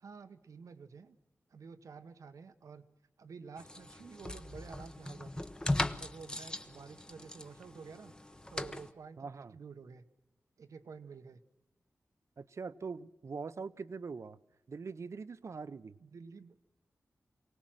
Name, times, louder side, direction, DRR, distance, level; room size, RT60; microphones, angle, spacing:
voice 1, 0.0-1.2 1.5-2.8 3.2-5.5 5.9-8.1 8.5-10.1 10.6-11.4 16.0-16.6, right 5 dB, 90° right, 10 dB, 1.0 m, -50 dB
sound 1, 3.6-8.9, left 1 dB, 15° left, 0.8 m, -39 dB
voice 2, 9.2-9.5 12.4-14.4 14.7-16.0, right 5 dB, 60° right, 15 dB, 0.7 m, -42 dB
23.5 x 18.0 x 7.6 m, 0.94 s
wide cardioid pair, 80°, 5 cm